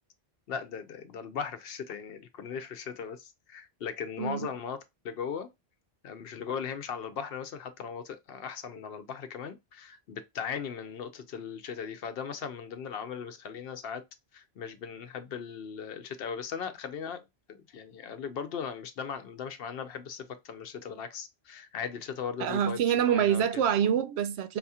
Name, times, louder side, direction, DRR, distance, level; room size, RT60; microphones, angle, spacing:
voice 1, 0.5-4.8 5.0-5.5 6.0-14.0 14.3-23.4, left 7 dB, 70° left, 0.8 m, -38 dB
voice 2, 22.4-24.6, right 9 dB, 85° right, 0.8 m, -26 dB
4.1 x 2.8 x 2.3 m
omnidirectional pair, 1.1 m